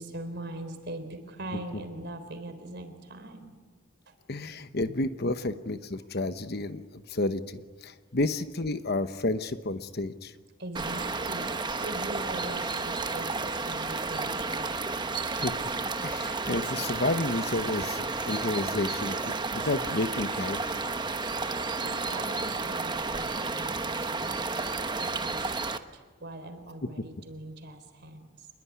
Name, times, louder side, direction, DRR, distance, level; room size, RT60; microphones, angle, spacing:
voice 1, 0.0-3.5 4.1-4.2 5.4-5.5 6.0-6.1 10.6-14.8 21.5-24.3 25.0-28.5, right 1 dB, 50° right, 8 dB, 3.7 m, -41 dB
voice 2, 4.3-10.3 15.4-15.6 16.0-20.6, left 2 dB, 50° left, 10 dB, 1.0 m, -31 dB
sound 1, 10.8-25.8, right 3 dB, 20° right, 1.0 m, -32 dB
27.5 x 21.5 x 9.6 m, 1.4 s
head